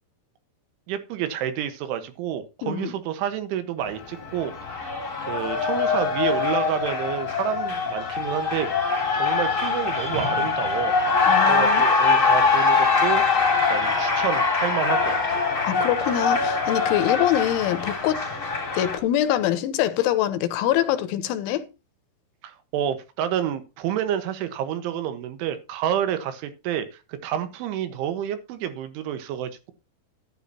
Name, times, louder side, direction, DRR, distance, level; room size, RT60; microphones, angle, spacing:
voice 1, 0.9-5.0 5.3-8.7 9.1-11.0 11.5-13.2 13.7-15.5 22.4-29.7, right 10 dB, 80° right, 3.7 m, -29 dB
voice 2, 2.6-2.9 11.3-11.8 15.6-18.2 18.7-21.6, left 12 dB, 80° left, 3.4 m, -24 dB
Cheering, 3.8-19.0, left 4 dB, 25° left, 1.8 m, -23 dB
12.0 x 12.0 x 2.9 m
omnidirectional pair, 5.6 m